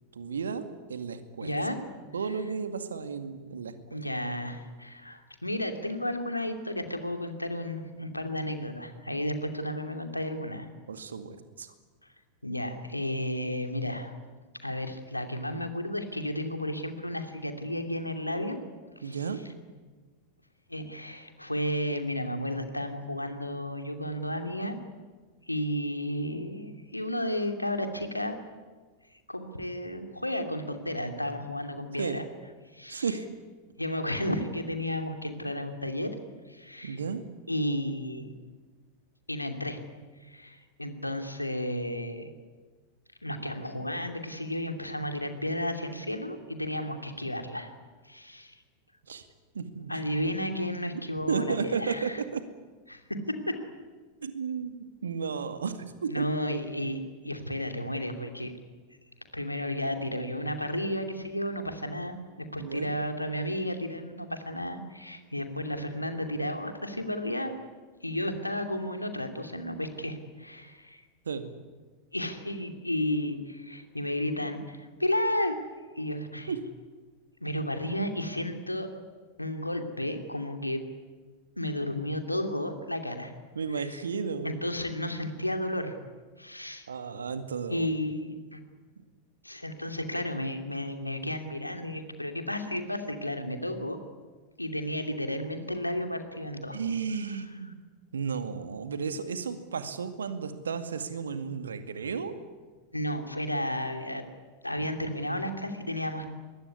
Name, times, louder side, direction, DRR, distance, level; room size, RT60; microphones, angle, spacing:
voice 1, 0.1-1.6 2.1-4.0 10.9-11.7 19.0-19.4 32.0-32.2 32.9-33.3 36.8-37.2 49.1-49.3 49.5-49.9 51.3-52.4 54.2-56.3 62.6-62.9 71.3-71.5 76.5-76.6 83.5-84.6 86.9-87.9 96.7-97.8 98.1-102.4, right 5 dB, 70° right, 9 dB, 2.1 m, -33 dB
voice 2, 1.4-1.8 3.9-10.7 12.4-14.1 14.6-18.6 19.0-19.2 20.7-24.7 25.5-28.4 29.3-32.2 32.7-33.0 33.8-36.1 36.5-37.0 37.5-38.3 39.3-39.8 40.2-42.3 43.2-47.7 48.0-48.6 49.9-52.1 52.9-53.0 53.5-53.6 56.1-58.5 59.3-67.5 68.0-71.0 72.1-75.5 75.9-76.5 77.4-79.0 79.4-80.8 81.6-83.3 83.8-84.0 84.4-86.0 86.4-86.9 87.7-88.6 89.4-94.0 94.6-96.8 102.9-104.3 104.6-106.3, left 1 dB, 85° left, 6 dB, 2.7 m, -33 dB
24.0 x 21.5 x 9.7 m, 1.4 s
figure-of-eight pair, 90°, 0 cm